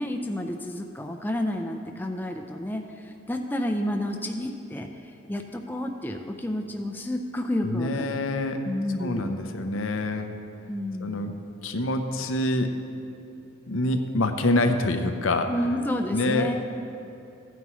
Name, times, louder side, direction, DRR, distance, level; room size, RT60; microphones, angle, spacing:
voice 1, 0.0-4.9 5.3-8.1 8.7-9.3 10.7-11.4 15.5-16.6, left 1 dB, 10° left, 3 dB, 0.4 m, -30 dB
voice 2, 7.6-8.6 9.0-10.3 11.0-11.3 11.6-12.7 13.7-15.5 16.1-16.6, left 2 dB, 80° left, 6 dB, 0.7 m, -26 dB
15.0 x 9.2 x 3.1 m, 2.8 s
head